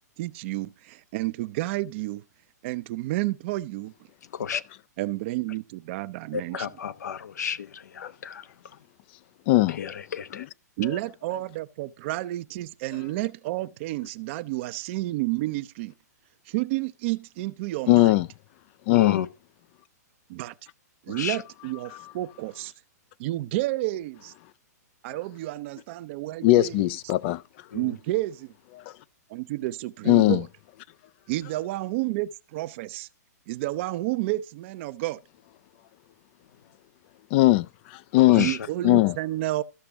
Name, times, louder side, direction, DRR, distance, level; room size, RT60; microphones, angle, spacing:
voice 1, 0.2-2.2 2.6-3.9 5.0-6.7 10.8-15.9 16.5-18.1 20.3-20.5 21.1-22.7 23.2-24.3 25.0-26.8 27.7-28.5 29.3-30.4 31.3-33.1 33.5-35.2 38.3-39.6, right 18 dB, 45° right, 0.6 m, -30 dB
voice 2, 6.3-8.8 9.7-10.5 18.9-19.3 21.1-21.4 27.7-28.0 38.2-38.7, left 8 dB, 75° left, 0.9 m, -33 dB
voice 3, 9.5-9.9 17.9-18.3 18.9-19.2 26.4-27.4 30.1-30.4 37.3-38.5 38.8-39.1, left 17 dB, 40° left, 0.4 m, -19 dB
14.0 x 5.9 x 3.5 m
hypercardioid pair, 125°, 9 cm